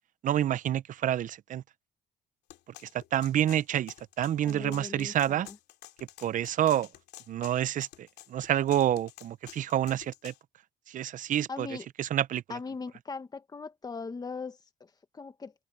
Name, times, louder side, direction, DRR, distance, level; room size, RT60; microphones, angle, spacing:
voice 1, 0.2-1.6 3.1-5.5 6.2-6.9 7.3-10.3 10.9-11.7 12.0-12.6, right 11 dB, 50° right, 0.7 m, -28 dB
sound 1, 2.5-10.4, left 14 dB, 80° left, 2.8 m, -50 dB
voice 2, 4.4-5.6 11.5-11.9 12.5-15.5, left 4 dB, 25° left, 1.8 m, -40 dB
open air
cardioid pair, 110°, 17 cm